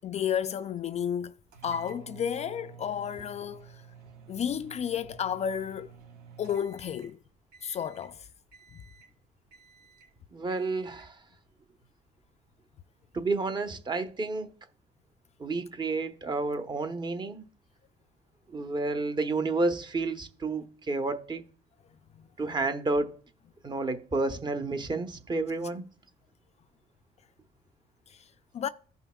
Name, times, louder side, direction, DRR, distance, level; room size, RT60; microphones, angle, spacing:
voice 1, 0.0-1.3 1.6-3.8 4.3-5.9 6.4-7.2 7.6-8.3 28.1-28.2 28.5-28.7, left 8 dB, 40° left, 0.3 m, -32 dB
sound 1, 1.5-7.2 7.5-8.1 8.5-9.2 9.5-10.1 10.5-11.1, right 7 dB, 80° right, 2.6 m, -51 dB
voice 2, 10.3-11.1 13.1-14.5 15.4-17.4 18.5-21.5 22.4-23.2 23.6-25.8, right 3 dB, 25° right, 1.0 m, -30 dB
15.0 x 5.5 x 2.3 m
cardioid pair, 110°, 17 cm